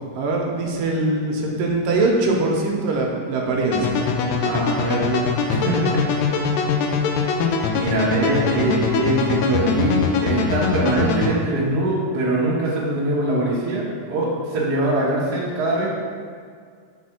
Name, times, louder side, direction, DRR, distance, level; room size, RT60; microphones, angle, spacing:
voice 1, 0.2-4.0, right 2 dB, 80° right, -1 dB, 2.4 m, -22 dB
sound 1, 3.7-11.3, left 5 dB, 80° left, 2.4 m, -22 dB
voice 2, 4.4-5.2 5.5-6.0 7.7-15.9, right 2 dB, 55° right, -6 dB, 1.1 m, -22 dB
6.1 x 4.2 x 5.8 m, 2.1 s
omnidirectional pair, 4.0 m